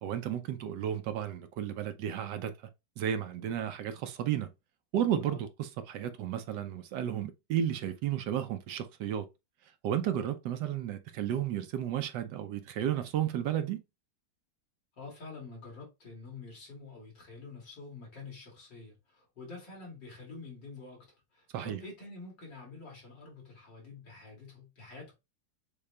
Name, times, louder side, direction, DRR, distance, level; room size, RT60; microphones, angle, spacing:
voice 1, 0.0-2.5 3.0-4.5 4.9-9.3 9.8-13.8 21.5-21.8, right 10 dB, 75° right, 1.1 m, -33 dB
voice 2, 15.0-25.1, left 3 dB, 70° left, 3.1 m, -47 dB
6.6 x 2.3 x 3.2 m
omnidirectional pair, 2.0 m